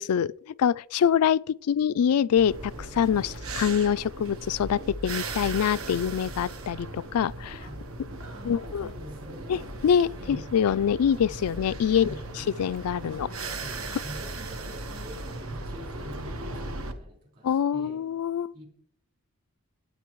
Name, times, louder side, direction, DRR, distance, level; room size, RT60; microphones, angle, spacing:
voice 1, 0.0-7.6 8.5-8.9 9.5-12.1 12.6-13.3 17.4-18.5, left 8 dB, 85° left, 0.4 m, -25 dB
sound 1, 2.4-16.9, right 2 dB, 70° right, 1.3 m, -37 dB
voice 2, 8.2-9.6 10.2-10.5 11.9-12.2 12.9-18.0 18.5-18.7, equal, 40° right, 4.7 m, -45 dB
22.0 x 9.2 x 3.1 m
head